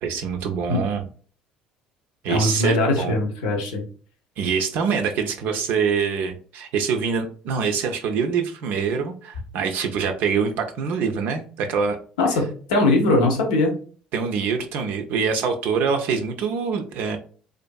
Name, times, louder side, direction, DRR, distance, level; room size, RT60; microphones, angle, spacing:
voice 1, 0.0-1.0 2.2-3.2 4.4-12.0 14.1-17.2, right 6 dB, 65° right, 5 dB, 0.4 m, -25 dB
voice 2, 2.3-3.8 12.2-13.7, left 2 dB, 85° left, 2 dB, 0.7 m, -21 dB
2.5 x 2.4 x 2.2 m, 0.42 s
hypercardioid pair, 65°, 3 cm